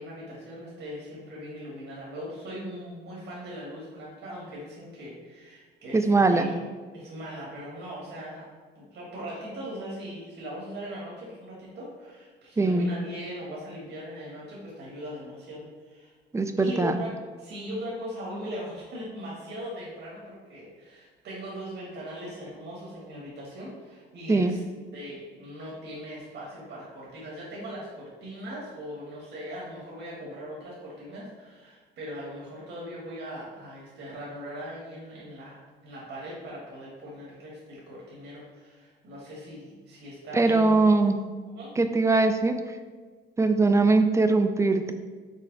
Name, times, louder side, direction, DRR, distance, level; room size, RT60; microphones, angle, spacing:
voice 1, 0.0-6.5 6.9-8.5 8.7-16.1 16.6-24.6 24.9-40.9 41.5-41.7, equal, 70° right, -5 dB, 1.3 m, -40 dB
voice 2, 5.9-6.5 12.6-12.9 16.3-17.0 24.3-24.5 40.3-41.2 41.8-42.6 43.4-44.9, right 3 dB, 15° right, 7 dB, 0.3 m, -21 dB
5.7 x 2.1 x 3.8 m, 1.5 s
cardioid pair, 90°, 20 cm